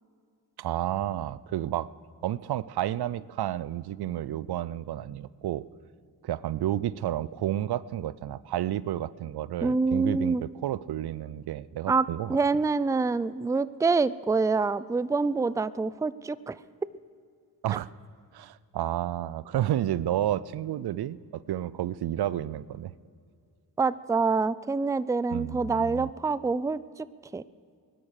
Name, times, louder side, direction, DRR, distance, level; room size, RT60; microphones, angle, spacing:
voice 1, 0.6-1.9 2.2-5.6 6.2-12.4 17.6-17.9 18.3-22.9 25.3-26.1, right 12 dB, 65° right, 19 dB, 0.5 m, -31 dB
voice 2, 9.6-10.4 11.9-16.6 23.8-27.1 27.3-27.4, right 4 dB, 10° right, 18 dB, 0.4 m, -26 dB
18.5 x 12.0 x 6.6 m, 2.2 s
supercardioid pair, 45°, 41 cm